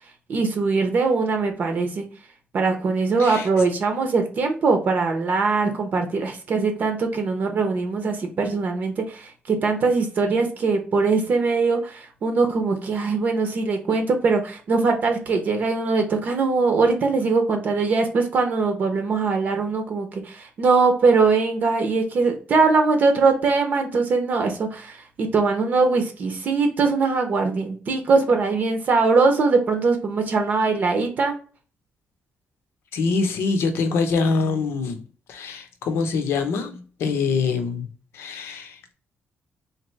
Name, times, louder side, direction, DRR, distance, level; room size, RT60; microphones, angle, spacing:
voice 1, 0.3-2.1 2.5-31.4, right 4 dB, 45° right, 0.7 m, -21 dB
voice 2, 32.9-35.0 35.3-37.9 38.1-38.9, left 4 dB, 85° left, 0.8 m, -24 dB
3.9 x 2.9 x 3.2 m
wide cardioid pair, 180°, 4 cm